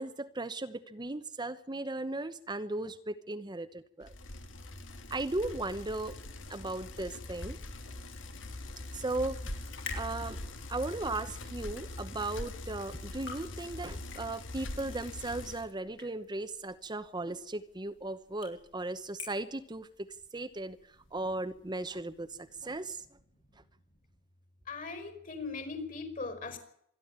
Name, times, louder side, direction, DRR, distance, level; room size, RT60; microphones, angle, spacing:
voice 1, 0.0-4.1 5.1-6.2 6.5-7.6 8.9-9.5 9.9-10.4 10.7-23.0, right 2 dB, 25° right, 10 dB, 0.9 m, -37 dB
Bicycle, 4.0-15.7, left 1 dB, 85° left, 2.6 m, -42 dB
sound 1, 9.5-22.8, left 6 dB, 70° left, 7.9 m, -52 dB
voice 2, 24.7-26.6, left 4 dB, 45° left, 9 dB, 4.9 m, -39 dB
26.0 x 11.5 x 8.8 m, 0.71 s
head